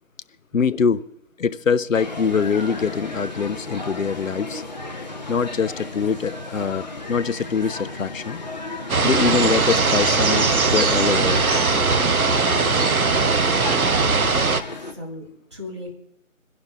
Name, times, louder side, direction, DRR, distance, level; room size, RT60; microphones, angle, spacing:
voice 1, 0.5-1.0 1.4-4.6 5.3-8.4 9.0-11.4, left 6 dB, 70° left, 15 dB, 0.6 m, -23 dB
sound 1, 1.9-14.9, left 2 dB, 30° left, 0.9 m, -34 dB
sound 2, 8.9-14.6, right 4 dB, 90° right, 1.0 m, -20 dB
voice 2, 12.5-15.9, equal, 20° right, -4 dB, 1.8 m, -36 dB
27.0 x 11.0 x 2.5 m, 0.79 s
figure-of-eight pair, 165°, 41 cm